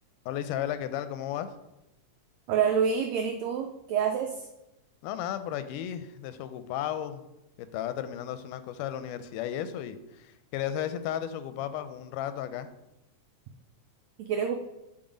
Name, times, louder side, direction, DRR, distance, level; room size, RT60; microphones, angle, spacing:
voice 1, 0.3-1.5 5.0-7.2 7.6-12.7, left 10 dB, 90° left, 11 dB, 2.1 m, -34 dB
voice 2, 2.5-4.5 14.2-14.6, right 7 dB, 85° right, 4 dB, 1.5 m, -27 dB
7.9 x 4.0 x 5.0 m, 0.92 s
omnidirectional pair, 3.6 m